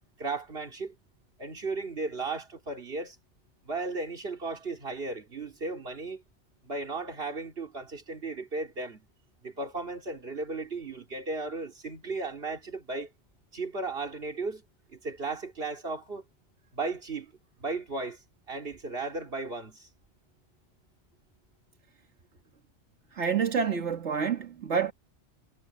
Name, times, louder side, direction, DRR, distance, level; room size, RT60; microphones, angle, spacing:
voice 1, 0.2-0.9 1.4-3.2 3.7-6.2 6.6-9.1 9.4-13.1 13.5-14.6 14.9-16.2 16.7-17.3 17.6-18.2 18.5-19.9, right 3 dB, 60° right, 2.9 m, -35 dB
voice 2, 23.1-24.9, right 6 dB, 85° right, 2.1 m, -28 dB
omnidirectional pair, 1.2 m